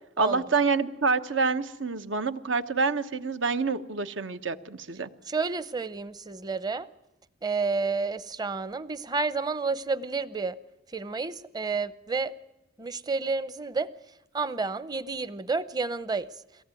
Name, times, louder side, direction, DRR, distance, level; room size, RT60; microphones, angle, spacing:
voice 1, 0.2-5.1, right 4 dB, 80° right, 10 dB, 1.2 m, -27 dB
voice 2, 5.3-6.9 7.4-10.6 10.9-12.3 12.8-13.9 14.3-16.4, right 4 dB, 20° right, 15 dB, 0.7 m, -30 dB
23.0 x 17.5 x 9.2 m, 0.93 s
head